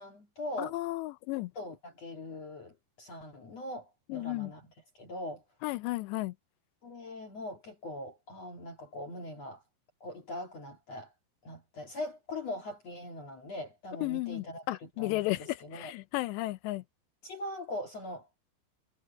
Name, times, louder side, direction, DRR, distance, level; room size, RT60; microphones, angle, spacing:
voice 1, 0.0-0.8 1.5-5.4 6.8-9.6 10.0-11.1 11.4-15.9 17.2-18.3, left 1 dB, 50° left, 2.2 m, -41 dB
voice 2, 0.6-1.5 4.1-4.5 5.6-6.3 14.0-16.8, left 19 dB, 80° left, 2.6 m, -34 dB
omnidirectional pair, 5.5 m